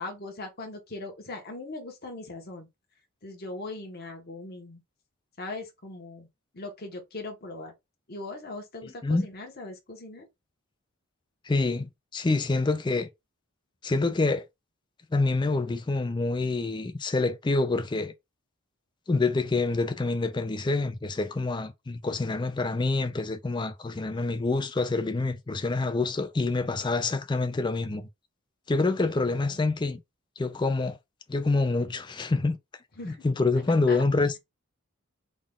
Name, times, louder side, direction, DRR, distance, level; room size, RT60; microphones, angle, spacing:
voice 1, 0.0-2.7 3.2-4.8 5.4-6.3 6.5-7.7 8.1-10.3 29.1-29.6 33.0-33.2 33.9-34.0, left 2 dB, 45° left, 1.1 m, -40 dB
voice 2, 11.5-13.1 13.8-14.4 15.1-18.1 19.1-28.1 28.7-30.0 30.4-31.0 31.3-32.6 33.0-34.4, left 3 dB, 20° left, 0.4 m, -26 dB
3.7 x 2.4 x 3.6 m
head